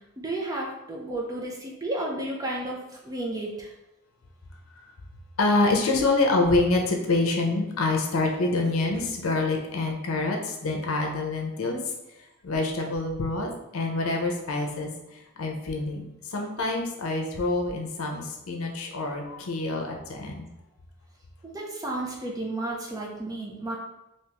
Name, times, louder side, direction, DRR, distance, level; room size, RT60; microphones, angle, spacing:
voice 1, 0.2-3.7 21.4-23.8, right 2 dB, 15° right, -2 dB, 0.5 m, -32 dB
voice 2, 5.4-11.8 12.4-14.9 15.4-20.5, left 2 dB, 75° left, 2 dB, 0.6 m, -26 dB
3.4 x 2.8 x 2.9 m, 0.91 s
head